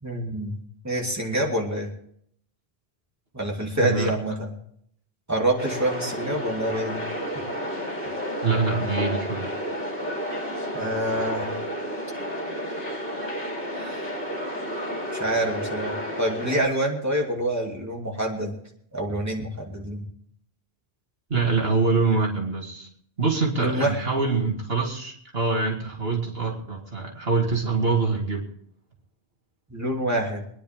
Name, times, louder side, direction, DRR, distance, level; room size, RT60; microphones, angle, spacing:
voice 1, 0.0-1.9 3.3-4.5 5.3-7.0 10.7-11.6 13.7-14.1 15.1-18.6 18.9-20.1 23.6-24.0 29.7-30.4, right 1 dB, 15° right, -1 dB, 2.8 m, -27 dB
voice 2, 3.8-4.1 8.4-9.5 21.3-22.9 23.2-28.4, right 4 dB, 65° right, 0 dB, 2.5 m, -24 dB
sound 1, 5.6-16.7, equal, 60° left, 2.9 m, -31 dB
24.5 x 10.5 x 3.7 m, 0.66 s
omnidirectional pair, 1.1 m